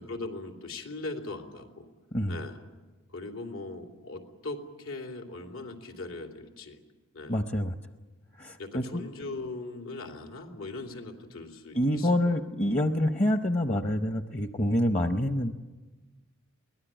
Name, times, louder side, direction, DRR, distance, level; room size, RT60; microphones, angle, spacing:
voice 1, 0.0-1.9 2.3-2.6 3.1-6.8 7.1-7.4 8.6-12.4, left 2 dB, 80° left, 3 dB, 3.1 m, -40 dB
voice 2, 7.3-7.7 8.4-9.0 11.7-15.5, left 1 dB, 30° left, 7 dB, 0.8 m, -27 dB
23.5 x 18.5 x 8.9 m, 1.2 s
head